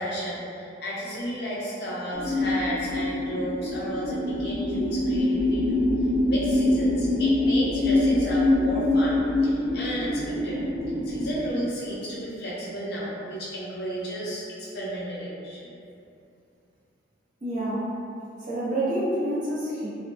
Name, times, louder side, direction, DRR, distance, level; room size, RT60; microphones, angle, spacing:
voice 1, 0.0-5.9 6.2-10.6 11.0-15.7, equal, 55° left, -7 dB, 0.6 m, -32 dB
sound 1, 2.1-11.5, left 1 dB, 5° right, 1.0 m, -24 dB
voice 2, 17.4-17.8 18.4-19.9, right 1 dB, 45° right, -10 dB, 0.7 m, -27 dB
2.8 x 2.0 x 2.5 m, 2.5 s
head